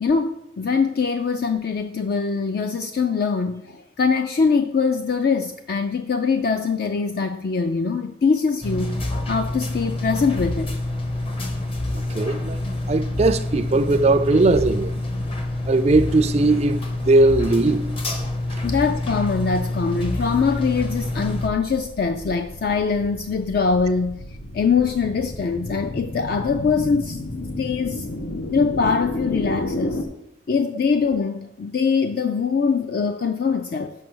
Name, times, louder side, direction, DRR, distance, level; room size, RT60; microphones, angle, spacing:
voice 1, 0.0-8.9 9.3-10.8 18.6-24.2 24.5-27.2 27.6-28.1 28.5-30.0 30.5-33.9, left 5 dB, 50° left, 0.4 m, -23 dB
sound 1, 8.6-21.5, left 1 dB, 25° left, 0.7 m, -27 dB
voice 2, 11.9-14.9 15.7-17.9, right 2 dB, 35° right, 0.3 m, -19 dB
sound 2, 21.5-30.0, left 1 dB, 90° left, 0.9 m, -32 dB
6.2 x 5.4 x 6.2 m
head